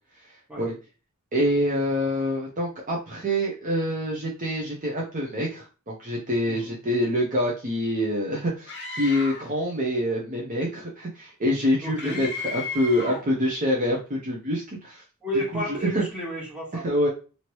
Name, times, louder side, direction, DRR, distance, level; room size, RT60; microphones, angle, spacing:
voice 1, 1.3-15.0 15.5-16.0 16.7-17.1, equal, 35° right, -2 dB, 0.7 m, -26 dB
Screaming, 8.7-9.5 12.0-13.3, left 3 dB, 50° left, 0.7 m, -34 dB
voice 2, 11.8-12.2 15.2-16.9, equal, 5° right, -5 dB, 1.5 m, -31 dB
3.0 x 2.8 x 2.9 m, 0.34 s
head